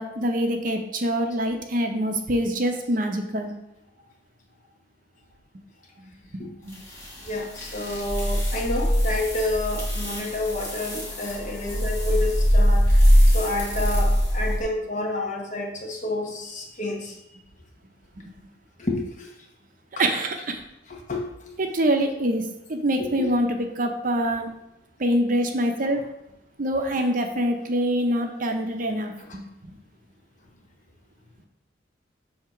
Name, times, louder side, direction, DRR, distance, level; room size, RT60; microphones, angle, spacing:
voice 1, 0.0-3.5 6.4-6.8 18.2-18.3 20.0-20.6 21.6-24.5 25.0-26.0 26.6-29.4, right 1 dB, 45° right, 5 dB, 0.7 m, -25 dB
sound 1, 6.7-14.6, equal, 15° left, 1.6 m, -22 dB
voice 2, 7.2-13.1 13.3-17.2 18.8-19.3 20.9-21.5 23.0-23.3 29.2-29.4, left 2 dB, 40° left, 0 dB, 1.2 m, -29 dB
7.5 x 2.9 x 5.8 m, 0.85 s
head